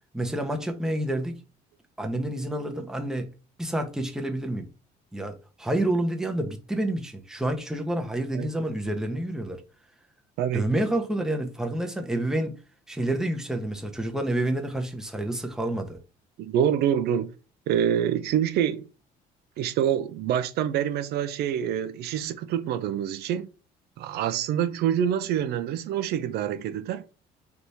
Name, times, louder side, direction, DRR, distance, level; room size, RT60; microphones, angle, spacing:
voice 1, 0.1-1.3 2.0-3.3 3.6-4.7 5.1-9.6 10.5-12.6 12.9-16.0, right 1 dB, 5° right, 0.8 m, -28 dB
voice 2, 16.4-17.3 17.7-18.9 19.6-23.5 24.0-27.0, right 9 dB, 75° right, 0.5 m, -26 dB
3.4 x 3.0 x 4.1 m
cardioid pair, 110°, 17 cm